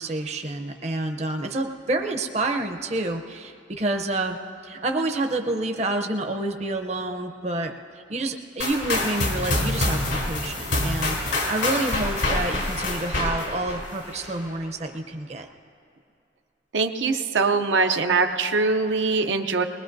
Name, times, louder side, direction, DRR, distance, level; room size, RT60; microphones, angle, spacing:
voice 1, 0.0-7.7 8.1-15.5, right 2 dB, 35° right, 4 dB, 0.6 m, -28 dB
sound 1, 8.6-14.4, left 2 dB, 90° left, 3.0 m, -26 dB
voice 2, 16.7-19.6, right 4 dB, 80° right, 5 dB, 0.6 m, -22 dB
20.5 x 20.0 x 2.6 m, 2.4 s
head